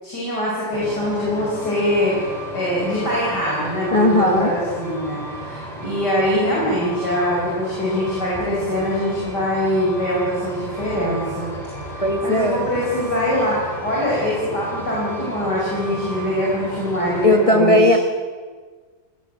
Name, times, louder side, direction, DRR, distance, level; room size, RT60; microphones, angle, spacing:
voice 1, 0.0-11.5 11.9-17.9, equal, 65° left, -6 dB, 6.4 m, -23 dB
Truck, 0.7-17.5, equal, ahead, 4.4 m, -33 dB
voice 2, 3.9-4.5 12.0-12.6 17.2-18.0, left 1 dB, 20° left, 3 dB, 1.2 m, -16 dB
19.0 x 15.5 x 9.0 m, 1.5 s
omnidirectional pair, 1.9 m